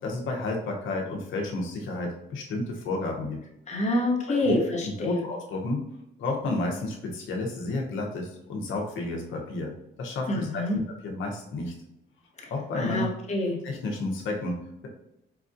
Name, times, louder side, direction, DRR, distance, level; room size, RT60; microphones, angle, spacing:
voice 1, 0.0-3.4 4.3-4.6 4.8-5.8 6.2-9.7 10.0-11.7 12.5-13.1 13.6-14.9, left 2 dB, 75° left, 0 dB, 0.9 m, -31 dB
voice 2, 3.7-5.2 10.3-10.8 12.8-13.6, left 1 dB, 35° left, -1 dB, 1.0 m, -27 dB
4.7 x 2.3 x 2.6 m, 0.84 s
cardioid pair, 90°, 20 cm